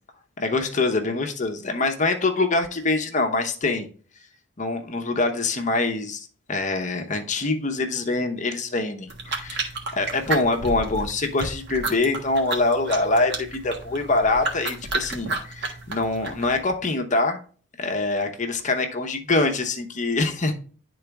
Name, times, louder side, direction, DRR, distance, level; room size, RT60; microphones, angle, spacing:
voice 1, 0.4-3.9 4.6-17.4 17.8-20.5, left 3 dB, 40° left, 0.9 m, -24 dB
sound 1, 9.1-16.6, right 3 dB, 60° right, 1.5 m, -32 dB
10.5 x 3.9 x 3.4 m
head